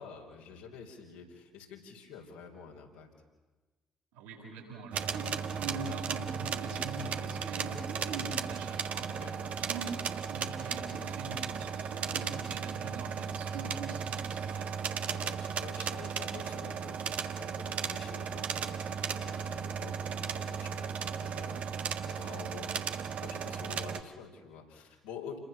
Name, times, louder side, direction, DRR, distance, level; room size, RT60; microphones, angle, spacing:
voice 1, 0.0-3.1 9.1-9.6 15.1-25.4, left 6 dB, 75° left, -1 dB, 4.9 m, -48 dB
voice 2, 4.1-9.3 9.6-14.8, right 3 dB, 75° right, -3 dB, 7.5 m, -43 dB
sound 1, 4.9-24.0, right 7 dB, 55° right, 1.5 m, -36 dB
29.5 x 23.0 x 7.1 m, 1.2 s
figure-of-eight pair, 45°, 3 cm